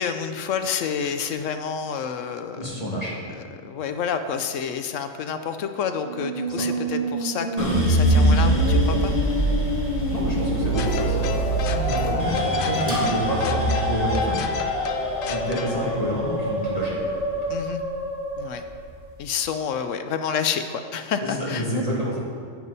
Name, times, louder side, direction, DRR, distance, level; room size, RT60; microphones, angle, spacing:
voice 1, 0.0-2.7 3.3-9.1 12.0-12.1 17.5-17.8 18.4-18.6 19.2-21.7, left 7 dB, 75° left, 8 dB, 0.9 m, -29 dB
voice 2, 2.6-3.2 6.5-6.7 10.1-11.3 11.7-14.4 15.3-17.0 21.2-22.2, equal, 30° left, -5 dB, 2.3 m, -28 dB
Musical instrument, 5.9-19.3, left 1 dB, 30° right, 1.9 m, -29 dB
sound 1, 7.6-17.8 18.2-19.0, right 2 dB, 15° right, 2.8 m, -24 dB
sound 2, 10.7-15.9, left 7 dB, 55° left, 0.7 m, -31 dB
10.5 x 9.1 x 4.1 m, 2.2 s
omnidirectional pair, 1.3 m